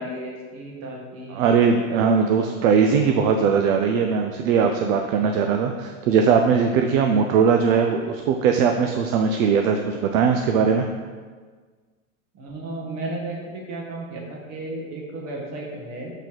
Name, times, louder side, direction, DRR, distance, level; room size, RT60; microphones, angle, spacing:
voice 1, 0.0-1.7 2.2-2.5 12.3-16.1, right 1 dB, 45° right, -1 dB, 1.7 m, -34 dB
voice 2, 1.3-10.9, right 6 dB, 65° right, 4 dB, 0.6 m, -20 dB
6.9 x 4.0 x 4.5 m, 1.5 s
supercardioid pair, 130°, 43 cm